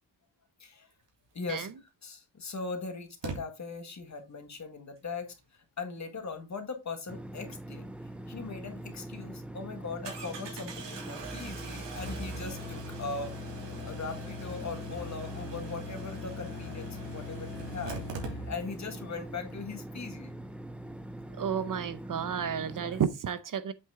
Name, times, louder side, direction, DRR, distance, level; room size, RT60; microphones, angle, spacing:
voice 1, 1.3-1.7 2.0-7.9 8.3-13.3 13.7-18.0 18.3-20.3, left 4 dB, 40° left, 1.7 m, -40 dB
Engine starting, 1.7-1.8 3.2-3.4 8.4-8.5 8.9-9.0 10.0-18.9 19.1-19.2 19.4-19.5, right 4 dB, 85° right, 2.9 m, -44 dB
sound 1, 7.1-23.1, right 1 dB, 5° right, 0.5 m, -43 dB
Musical instrument, 11.9-18.7, left 4 dB, 70° left, 1.7 m, -43 dB
voice 2, 21.4-23.7, right 7 dB, 50° right, 0.7 m, -31 dB
7.8 x 6.0 x 3.6 m
wide cardioid pair, 180°, 42 cm